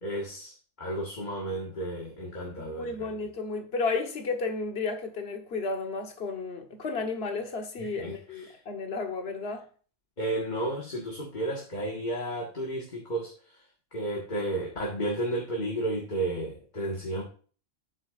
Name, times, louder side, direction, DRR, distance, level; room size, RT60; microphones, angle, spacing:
voice 1, 0.0-3.2 7.8-8.6 10.2-13.3 13.9-17.2, right 1 dB, 40° left, 1.8 m, -33 dB
voice 2, 2.6-9.7, left 3 dB, 55° left, 1.5 m, -33 dB
8.7 x 7.9 x 2.5 m
omnidirectional pair, 1.3 m